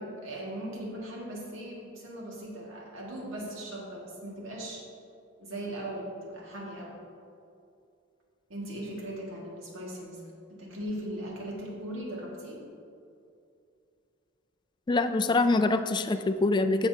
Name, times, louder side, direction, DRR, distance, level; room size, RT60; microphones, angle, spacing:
voice 1, 0.2-4.8 5.4-7.0 8.5-10.2 10.5-12.6, right 1 dB, 80° right, -3 dB, 1.9 m, -39 dB
voice 2, 14.9-16.9, left 3 dB, 20° left, 8 dB, 0.3 m, -24 dB
15.0 x 6.1 x 2.8 m, 2.5 s
head